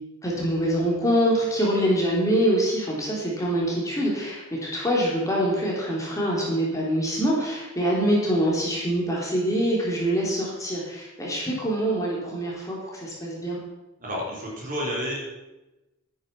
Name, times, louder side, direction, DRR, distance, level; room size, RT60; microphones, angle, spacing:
voice 1, 0.2-13.6, equal, 15° left, -4 dB, 3.2 m, -25 dB
voice 2, 14.0-15.2, equal, 40° right, -3 dB, 4.1 m, -30 dB
12.0 x 9.8 x 5.9 m, 1.0 s
head